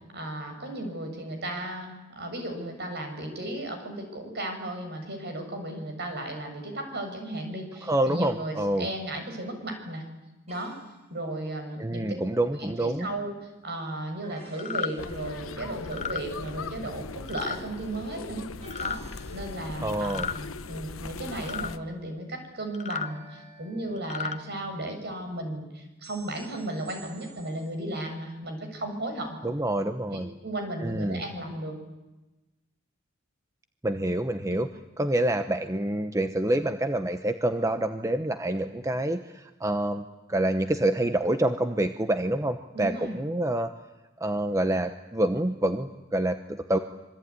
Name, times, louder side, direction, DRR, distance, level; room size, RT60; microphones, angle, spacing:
voice 1, 0.1-10.0 10.5-10.8 11.1-12.2 12.5-13.3 13.6-18.5 18.8-19.0 19.3-20.4 20.7-29.4 30.1-31.8 34.5-34.6 42.7-43.2, right 1 dB, 55° right, 5 dB, 6.8 m, -35 dB
voice 2, 7.8-8.9 11.8-13.1 19.8-20.3 29.4-30.3 30.8-31.2 33.8-34.7 35.0-43.7 44.2-46.8, right 1 dB, 15° right, 8 dB, 0.9 m, -27 dB
sound 1, 10.5-11.0 14.2-15.9 18.6-20.0 23.0-24.5 26.0-27.7, right 3 dB, 35° right, 7.6 m, -53 dB
sound 2, 14.6-14.9 15.9-16.2 17.3-17.6 18.6-19.0 20.0-20.4 21.4-21.7 22.7-23.1 24.0-24.4, left 6 dB, 35° left, 1.1 m, -33 dB
sound 3, 15.0-21.8, left 3 dB, 90° left, 1.1 m, -39 dB
26.0 x 23.5 x 9.6 m, 1.1 s
head